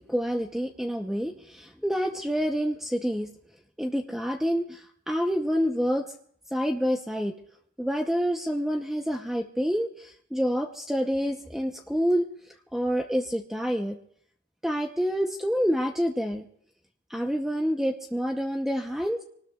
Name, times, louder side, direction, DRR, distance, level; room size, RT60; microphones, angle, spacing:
voice 1, 0.1-3.3 3.8-6.1 6.5-7.3 7.8-12.3 12.7-14.0 14.6-16.5 17.1-19.2, equal, ahead, 3 dB, 0.7 m, -27 dB
25.5 x 19.0 x 2.3 m, 0.65 s
head